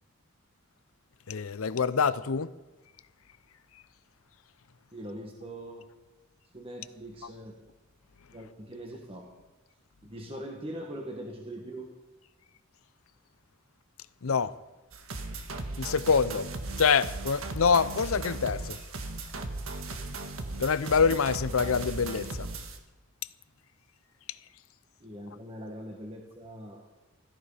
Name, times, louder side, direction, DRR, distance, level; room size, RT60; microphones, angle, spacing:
voice 1, 1.3-2.5 14.2-14.5 15.8-16.5 16.8-18.8 20.6-22.5, left 5 dB, 80° left, 0.6 m, -25 dB
voice 2, 4.9-5.9 6.5-7.6 8.3-9.3 10.0-11.9 25.0-26.9, right 1 dB, 25° right, 1.5 m, -42 dB
sound 1, 14.9-22.8, right 2 dB, 75° right, 1.6 m, -37 dB
16.0 x 13.5 x 5.0 m
head